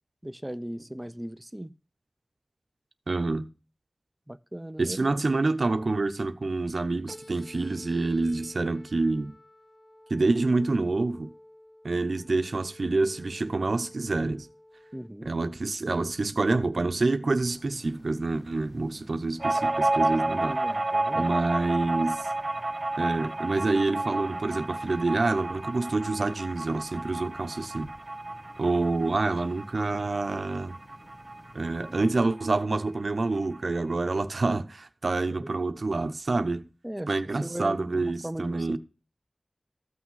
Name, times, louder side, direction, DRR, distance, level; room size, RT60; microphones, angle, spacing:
voice 1, 0.2-1.7 4.3-5.2 14.9-15.3 20.4-21.3 35.3-35.5 36.8-37.1 37.4-38.8, right 1 dB, 15° right, 0.6 m, -37 dB
voice 2, 3.1-3.5 4.8-9.3 10.1-11.3 11.8-14.5 15.2-20.5 21.1-22.3 23.0-27.9 28.6-30.7 31.5-36.7 37.1-38.8, right 3 dB, 80° right, 1.0 m, -27 dB
sound 1, 7.1-15.1, left 1 dB, 35° left, 2.5 m, -51 dB
sound 2, 17.4-32.2, left 1 dB, 75° left, 7.2 m, -53 dB
sound 3, 19.4-32.5 32.8-32.9 33.2-34.0, right 2 dB, 50° right, 1.5 m, -31 dB
14.5 x 6.2 x 5.7 m
wide cardioid pair, 50°, 0 cm